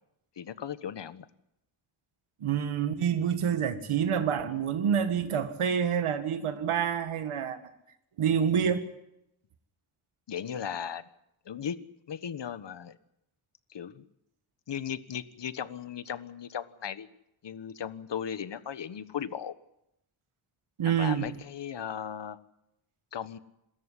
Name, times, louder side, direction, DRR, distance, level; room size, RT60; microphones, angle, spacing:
voice 1, 0.4-1.3 10.3-11.1 11.4-11.8 12.1-13.0 13.7-14.0 14.7-17.1 17.4-19.5 20.8-22.4 23.1-23.4, left 8 dB, 60° left, 14 dB, 1.4 m, -37 dB
voice 2, 2.4-7.6 8.2-8.9 20.8-21.3, right 8 dB, 85° right, 9 dB, 2.0 m, -27 dB
26.5 x 13.5 x 9.9 m, 0.82 s
cardioid pair, 80°, 49 cm